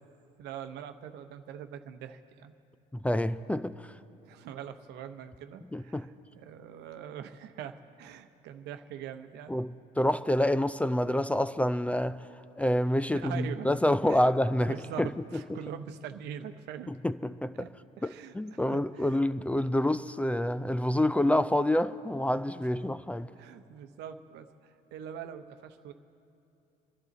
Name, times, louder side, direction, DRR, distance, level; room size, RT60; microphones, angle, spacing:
voice 1, 0.4-2.5 4.3-9.5 13.1-13.7 14.1-14.3 14.6-16.9 17.6-17.7 18.0-19.2 23.4-25.9, right 9 dB, 85° right, 0.8 m, -43 dB
voice 2, 2.9-3.8 5.7-6.1 9.5-12.3 12.6-15.6 16.9-17.6 18.0-23.3, left 1 dB, 10° left, 0.3 m, -28 dB
27.0 x 11.5 x 4.1 m
cardioid pair, 110°, 17 cm